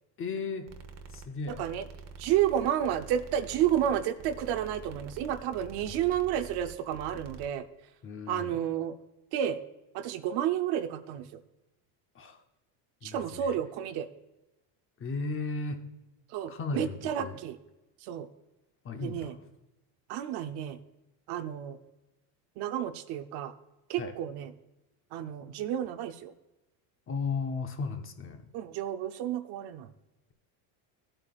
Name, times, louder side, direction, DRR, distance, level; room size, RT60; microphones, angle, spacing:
voice 1, 0.2-0.7 1.1-1.6 5.8-6.0 8.0-8.6 12.1-12.4 13.0-13.6 15.0-15.9 16.5-17.4 18.8-19.4 24.0-24.2 27.1-28.5, left 4 dB, 30° left, 6 dB, 0.8 m, -35 dB
sound 1, 0.7-7.5, right 4 dB, 35° right, 1.0 m, -47 dB
voice 2, 2.2-7.6 8.3-8.9 9.3-9.6 9.9-11.4 13.0-14.1 16.3-17.6 18.0-18.3 19.0-19.3 20.1-20.8 21.3-21.8 22.6-23.5 23.9-24.5 25.1-26.3 28.5-29.9, right 10 dB, 60° right, 9 dB, 0.8 m, -31 dB
15.0 x 8.9 x 2.4 m, 0.99 s
cardioid pair, 135°, 44 cm